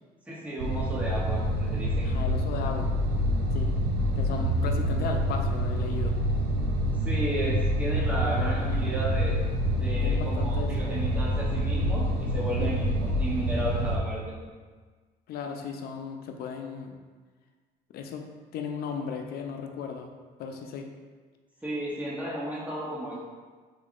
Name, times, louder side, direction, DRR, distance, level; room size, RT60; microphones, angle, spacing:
voice 1, 0.3-2.1 6.9-9.4 9.7-14.3 21.6-23.2, equal, 10° right, -5 dB, 0.8 m, -33 dB
sound 1, 0.6-14.0, equal, 80° right, 0.5 m, -27 dB
voice 2, 2.0-2.9 3.5-3.7 4.2-6.1 8.3-8.4 8.7-8.9 10.0-10.7 12.6-12.7 15.3-16.9 17.9-18.3 18.5-20.1 20.4-20.9, left 6 dB, 65° left, 4 dB, 0.4 m, -36 dB
3.8 x 3.3 x 2.5 m, 1.4 s
cardioid pair, 110°, 17 cm